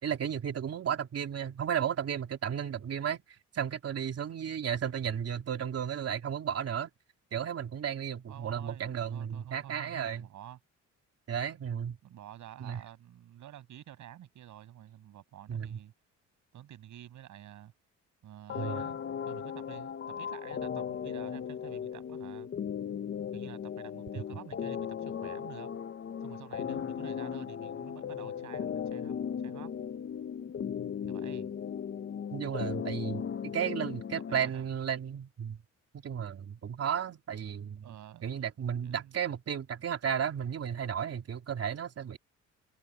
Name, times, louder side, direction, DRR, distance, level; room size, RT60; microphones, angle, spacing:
voice 1, 0.0-3.2 3.5-6.9 7.3-10.3 11.3-12.0 12.6-12.8 15.5-15.8 18.6-18.8 32.3-35.6 35.9-37.9 38.2-42.2, right 8 dB, 55° right, 3.3 m, -34 dB
voice 2, 8.3-10.6 12.0-15.9 16.5-17.7 18.2-19.0 19.3-22.5 23.3-25.7 26.2-29.7 31.1-31.5 34.4-34.7 37.8-38.3 38.8-39.1, right 11 dB, 75° right, 6.2 m, -49 dB
sound 1, 18.5-34.5, left 8 dB, 40° left, 0.9 m, -37 dB
cardioid pair, 90°, 30 cm